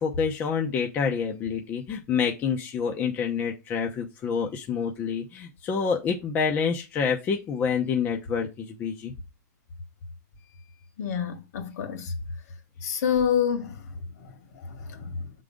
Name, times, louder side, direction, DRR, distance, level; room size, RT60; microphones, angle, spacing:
voice 1, 0.0-9.1, left 6 dB, 20° left, 0.8 m, -27 dB
voice 2, 11.0-12.1 12.8-13.8 14.6-15.3, left 8 dB, 65° left, 2.2 m, -27 dB
7.3 x 3.8 x 5.1 m
supercardioid pair, 160°, 9 cm